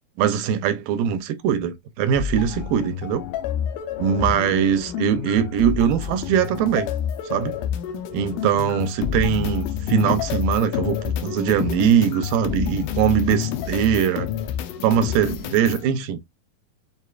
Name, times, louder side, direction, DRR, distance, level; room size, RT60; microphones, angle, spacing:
voice 1, 0.2-3.2 4.0-6.9 7.3-7.6 8.1-14.3 14.8-16.2, right 8 dB, 80° right, 2.1 m, -21 dB
sound 1, 2.1-15.9, left 9 dB, 75° left, 2.0 m, -28 dB
6.6 x 2.6 x 2.3 m
omnidirectional pair, 4.3 m